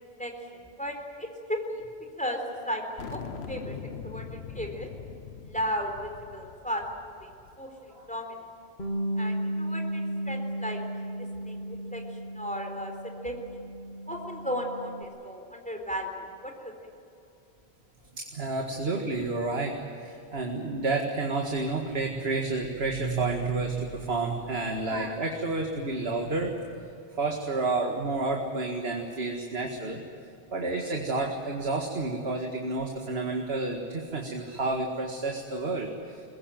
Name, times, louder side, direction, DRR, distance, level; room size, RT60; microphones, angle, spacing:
voice 1, 0.6-1.8 2.2-3.8 4.0-4.9 5.4-7.3 7.6-8.4 9.2-10.8 11.2-12.9 13.2-13.3 14.1-16.7, equal, 5° left, 2 dB, 3.9 m, -35 dB
sound 1, 3.0-7.7, left 6 dB, 75° left, 1.3 m, -42 dB
Bass guitar, 8.8-15.0, right 1 dB, 50° left, 1.7 m, -34 dB
voice 2, 18.2-26.6 27.2-30.0 30.5-36.2, right 3 dB, 70° right, 2 dB, 2.2 m, -30 dB
22.5 x 21.0 x 9.2 m, 2.7 s
omnidirectional pair, 1.1 m